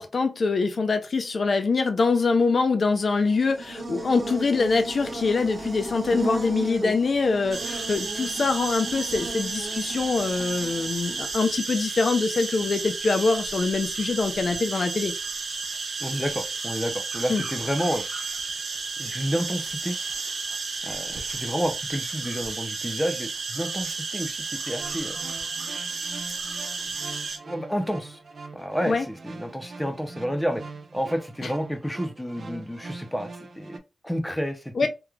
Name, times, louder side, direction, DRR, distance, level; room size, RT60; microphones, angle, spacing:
voice 1, 0.0-15.1 17.3-17.4 28.9-29.1 31.4-31.5 34.7-34.9, left 4 dB, 65° left, 0.4 m, -24 dB
Buzz, 3.1-11.3, right 2 dB, 40° right, 1.2 m, -36 dB
sound 1, 7.5-27.4, right 4 dB, 90° right, 0.9 m, -32 dB
voice 2, 16.0-18.0 19.0-19.9 20.8-25.2 27.5-28.2 28.5-30.6 30.9-34.9, equal, 5° left, 0.7 m, -30 dB
sound 2, 24.5-33.8, right 3 dB, 65° right, 0.6 m, -43 dB
3.5 x 3.0 x 2.3 m
wide cardioid pair, 90°, 0 cm